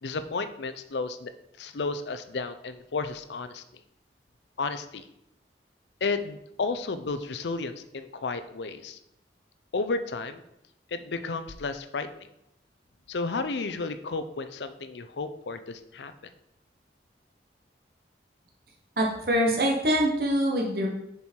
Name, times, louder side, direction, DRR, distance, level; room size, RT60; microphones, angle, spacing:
voice 1, 0.0-1.3 1.6-3.6 4.6-5.0 6.0-9.0 9.7-10.4 10.9-12.3 13.1-16.1, left 3 dB, 85° left, 10 dB, 0.6 m, -32 dB
voice 2, 19.0-20.9, equal, 55° right, -1 dB, 1.0 m, -24 dB
6.9 x 4.6 x 4.4 m, 0.81 s
head